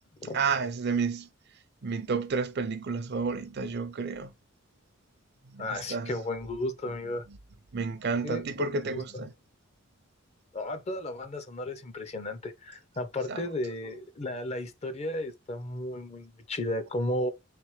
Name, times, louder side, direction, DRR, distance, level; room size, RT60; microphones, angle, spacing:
voice 1, 0.3-1.3 1.8-4.3 5.5-6.1 7.7-9.3 13.3-13.4, right 4 dB, 55° right, 0.5 m, -31 dB
voice 2, 5.6-7.3 8.2-9.2 10.5-17.3, left 1 dB, 35° left, 0.6 m, -34 dB
3.7 x 3.3 x 3.1 m
head